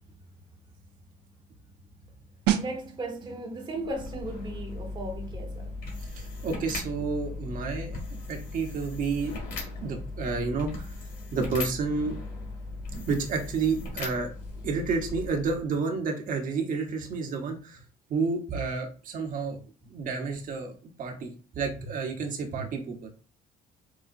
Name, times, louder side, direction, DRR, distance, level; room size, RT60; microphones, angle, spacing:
sound 1, 2.5-13.0 13.2-13.5, right 11 dB, 80° right, 0.5 m, -38 dB
voice 1, 2.6-5.7, right 1 dB, 25° right, 1.0 m, -36 dB
sound 2, 3.8-15.7, left 3 dB, 60° left, 1.9 m, -38 dB
voice 2, 6.1-8.0 8.3-9.3 9.8-10.9 11.3-12.2 13.0-14.3 14.6-17.8 18.1-20.7 21.0-23.1, right 4 dB, 55° right, 1.0 m, -30 dB
4.9 x 2.2 x 2.5 m
cardioid pair, 110°, 17 cm